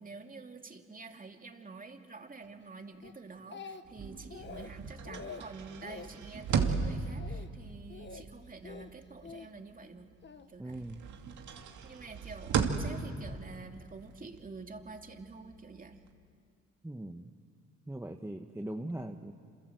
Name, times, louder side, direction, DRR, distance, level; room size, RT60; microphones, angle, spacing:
voice 1, 0.0-10.1 10.5-10.8 11.8-16.0, right 3 dB, 30° right, 4 dB, 2.6 m, -48 dB
Speech, 3.0-4.0 4.3-4.7 5.0-5.4 5.8-6.1 6.5-6.8 7.2-7.5 7.9-8.2 8.6-9.5 10.2-10.5, left 5 dB, 35° left, 1.4 m, -46 dB
sound 1, 3.9-10.4 10.7-16.1, right 6 dB, 75° right, 2.4 m, -37 dB
voice 2, 10.6-11.0 16.8-17.3 17.9-19.3, right 1 dB, 10° right, 4 dB, 1.2 m, -40 dB
28.0 x 27.0 x 7.9 m, 2.2 s
cardioid pair, 90°, 30 cm